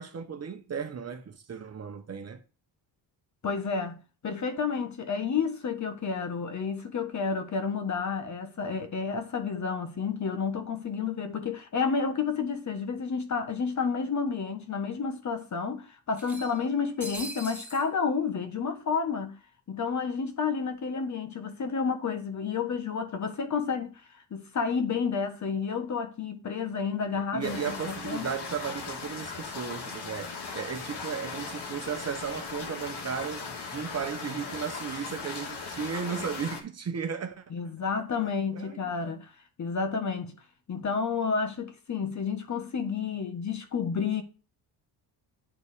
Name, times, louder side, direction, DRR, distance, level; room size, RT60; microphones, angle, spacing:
voice 1, 0.0-2.4 27.1-37.4 38.5-38.9, right 6 dB, 35° right, 1.1 m, -35 dB
voice 2, 3.4-4.0 4.2-19.4 19.7-23.9 24.3-28.3 37.5-39.3 39.6-40.3 40.7-44.2, left 5 dB, 40° left, 1.4 m, -30 dB
sound 1, 12.7-12.8 13.1-13.2 14.3-14.4 14.7-14.8 16.1-17.9, right 2 dB, 5° right, 3.0 m, -42 dB
sound 2, 27.4-36.6, left 4 dB, 65° left, 2.1 m, -38 dB
8.9 x 4.1 x 4.9 m
cardioid pair, 95°, 43 cm